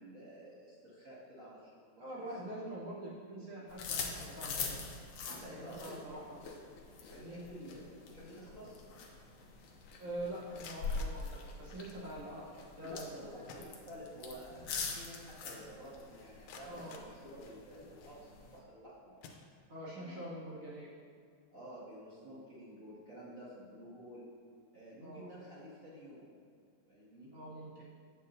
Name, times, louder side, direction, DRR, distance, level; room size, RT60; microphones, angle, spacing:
voice 1, 0.0-2.5 5.3-6.0 7.1-8.8 12.2-12.5 12.8-19.2 19.9-20.2 21.5-24.3 24.7-26.5 26.9-27.4, equal, 30° right, -10 dB, 2.1 m, -51 dB
voice 2, 2.0-4.8 5.2-6.4 7.1-7.4 10.0-12.2 12.8-13.6 16.7-17.0 19.7-20.9 25.0-25.3 27.3-27.8, right 1 dB, 55° right, -7 dB, 1.7 m, -45 dB
sound 1, 3.7-18.6, left 4 dB, 90° left, 1.1 m, -44 dB
sound 2, 10.5-12.1 13.1-13.2 13.5-14.4 14.7-14.8 15.4-15.5 16.0-17.9 18.5-18.7 19.2-20.0, left 4 dB, 75° left, 1.7 m, -56 dB
8.4 x 8.2 x 2.7 m, 2.2 s
omnidirectional pair, 3.4 m